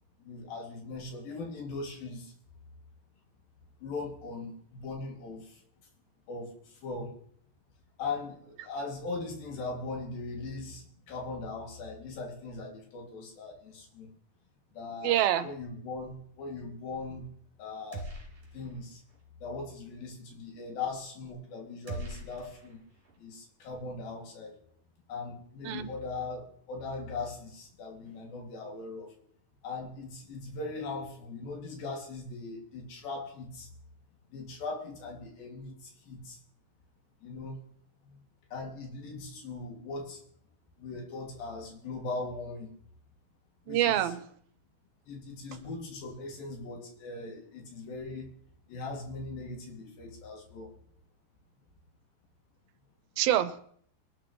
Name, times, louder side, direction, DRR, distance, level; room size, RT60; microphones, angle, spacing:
voice 1, 0.2-2.3 3.8-5.6 6.3-7.2 8.0-14.1 14.7-17.3 17.6-18.1 18.5-19.0 19.4-22.8 23.2-24.6 25.1-29.1 29.6-33.7 34.3-36.4 37.2-37.6 38.1-38.2 38.5-40.2 40.8-42.7 43.7-44.1 45.1-48.3 48.7-50.7, left 3 dB, 80° left, 4.2 m, -39 dB
voice 2, 15.0-15.5 25.7-25.9 43.7-44.2 53.2-53.6, right 12 dB, 85° right, 2.6 m, -26 dB
sound 1, 17.9-18.8 19.1-19.2 21.9-23.2, right 2 dB, 50° right, 4.9 m, -42 dB
22.5 x 12.0 x 3.1 m
omnidirectional pair, 4.2 m